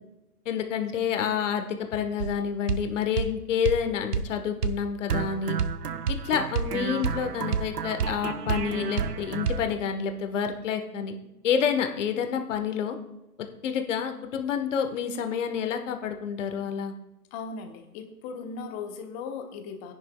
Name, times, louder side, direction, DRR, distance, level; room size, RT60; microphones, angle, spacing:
voice 1, 0.4-5.6 6.1-11.1 11.4-13.0 13.6-16.9, left 7 dB, 55° left, 6 dB, 1.3 m, -28 dB
sound 1, 2.2-2.4 2.7-2.9 3.2-3.3 3.6-3.8 4.1-4.3 4.6-4.8 5.1-9.7, right 6 dB, 85° right, 0.8 m, -29 dB
voice 2, 17.3-19.9, left 5 dB, 25° left, 6 dB, 1.1 m, -37 dB
18.5 x 10.5 x 2.3 m, 1.0 s
figure-of-eight pair, 120°, 46 cm